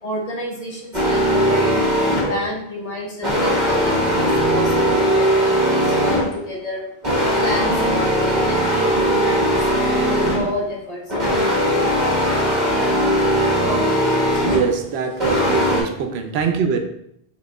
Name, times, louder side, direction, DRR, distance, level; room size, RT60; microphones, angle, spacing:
voice 1, 0.0-6.9 7.4-11.1 11.7-12.0 13.6-14.6, left 1 dB, 40° left, -3 dB, 1.0 m, -30 dB
sound 1, 0.9-2.5 3.2-6.5 7.0-10.6 11.1-14.7 15.2-15.8, equal, 45° right, 1.3 m, -19 dB
voice 2, 14.5-16.8, right 6 dB, 85° right, 6 dB, 0.8 m, -23 dB
5.0 x 3.5 x 2.2 m, 0.73 s
omnidirectional pair, 1.1 m